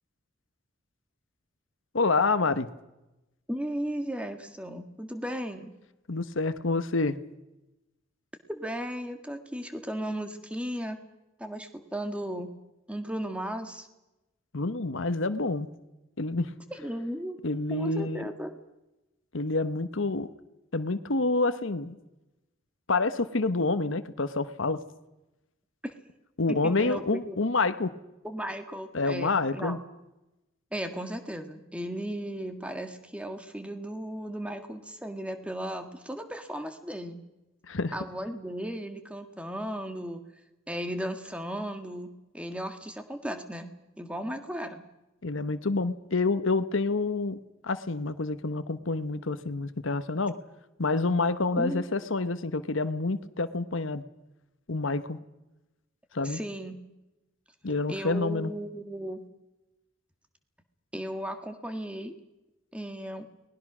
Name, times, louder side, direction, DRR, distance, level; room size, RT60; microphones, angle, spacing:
voice 1, 1.9-2.7 6.1-7.2 14.5-15.7 16.2-16.5 17.4-18.2 19.3-20.3 20.7-22.0 22.9-24.8 26.4-27.9 28.9-29.8 37.7-37.9 45.2-47.4 47.6-50.3 50.8-54.0 54.7-55.2 56.1-56.4 57.6-58.5, left 3 dB, 75° left, 11 dB, 1.1 m, -28 dB
voice 2, 3.5-5.7 8.5-11.0 11.4-12.5 12.9-13.9 16.7-17.4 17.7-18.5 25.8-25.9 26.5-27.4 28.2-29.8 30.7-37.2 37.9-40.2 40.7-44.9 51.6-51.8 56.2-56.8 57.9-59.2 60.9-62.2 62.7-63.3, equal, 5° right, 7 dB, 1.7 m, -35 dB
29.5 x 20.0 x 6.2 m, 0.97 s
head